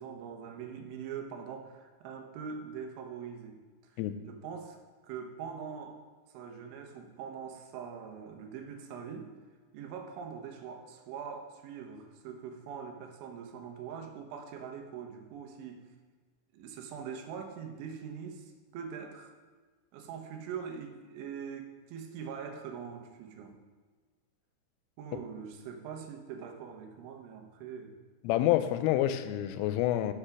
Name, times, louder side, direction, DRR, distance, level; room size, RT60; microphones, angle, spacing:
voice 1, 0.0-4.0 4.3-4.8 5.0-6.0 6.3-9.3 9.7-15.9 16.5-19.4 19.9-23.6 25.0-27.9, right 7 dB, 80° right, 4 dB, 3.2 m, -43 dB
voice 2, 28.2-30.1, left 13 dB, 90° left, 11 dB, 3.2 m, -28 dB
7.9 x 6.5 x 5.9 m, 1.4 s
omnidirectional pair, 5.7 m